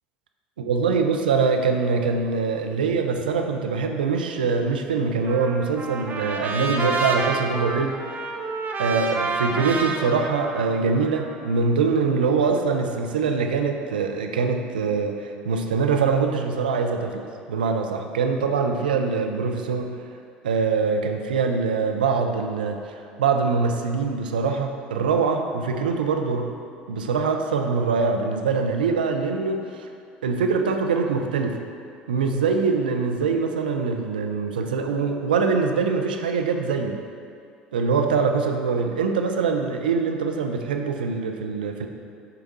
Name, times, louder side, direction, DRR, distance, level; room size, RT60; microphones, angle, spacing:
voice 1, 0.6-8.2 8.8-20.0 20.4-26.5 26.9-29.9 30.2-31.6 32.1-37.0 37.7-41.9, right 5 dB, 85° right, 4 dB, 0.4 m, -23 dB
Trumpet, 5.3-11.5, right 3 dB, 35° right, 0.6 m, -29 dB
6.7 x 3.5 x 4.0 m, 2.4 s
hypercardioid pair, 65°, 5 cm